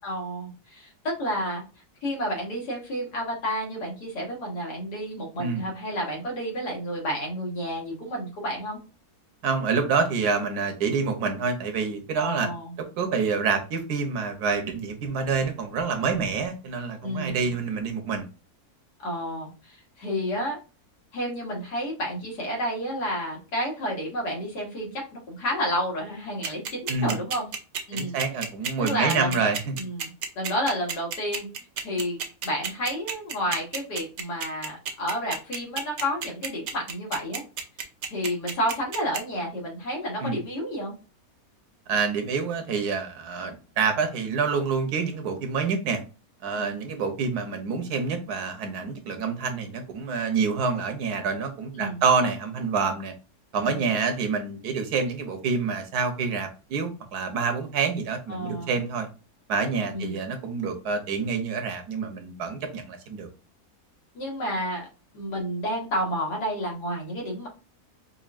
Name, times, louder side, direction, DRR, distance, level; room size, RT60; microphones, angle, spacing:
voice 1, 0.0-1.6 2.0-8.8 12.2-12.8 17.0-17.5 19.0-20.6 21.1-27.5 27.9-28.2 28.8-29.5 29.8-30.1 30.4-31.5 31.8-37.4 38.1-40.9 46.6-46.7 51.8-52.0 53.6-53.9 58.3-58.8 59.9-60.2 64.2-64.9 65.1-67.5, equal, 90° left, -1 dB, 2.0 m, -30 dB
voice 2, 9.4-12.5 13.0-18.3 26.9-27.2 27.9-29.8 40.2-40.4 41.9-46.0 46.4-53.1 53.5-59.1 59.5-63.3, right 5 dB, 80° right, 6 dB, 1.3 m, -27 dB
sound 1, 26.4-39.2, right 6 dB, 60° right, 0.9 m, -31 dB
5.3 x 2.5 x 2.5 m, 0.34 s
omnidirectional pair, 1.7 m